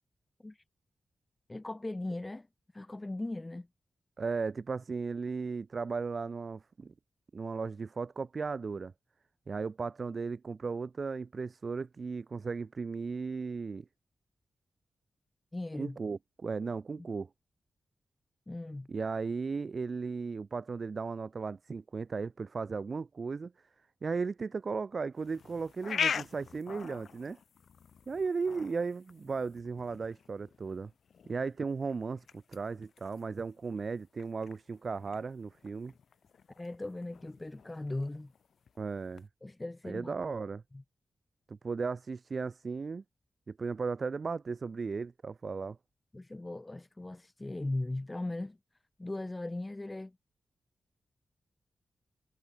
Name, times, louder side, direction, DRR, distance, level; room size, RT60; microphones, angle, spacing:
voice 1, 1.5-2.5 2.7-3.7 15.5-16.0 17.0-17.1 18.5-18.9 36.6-38.3 39.4-40.1 40.7-40.8 46.1-48.6 49.0-50.1, left 2 dB, 15° left, 0.9 m, -38 dB
voice 2, 4.2-6.9 7.3-8.9 9.5-13.8 15.8-17.3 18.9-23.5 24.0-27.4 28.1-30.9 31.3-35.9 38.8-39.3 39.9-40.6 41.5-43.0 43.5-45.8, right 4 dB, 40° right, 0.7 m, -36 dB
sound 1, 25.2-39.3, left 7 dB, 70° left, 2.6 m, -43 dB
wide cardioid pair, 170°, 0 cm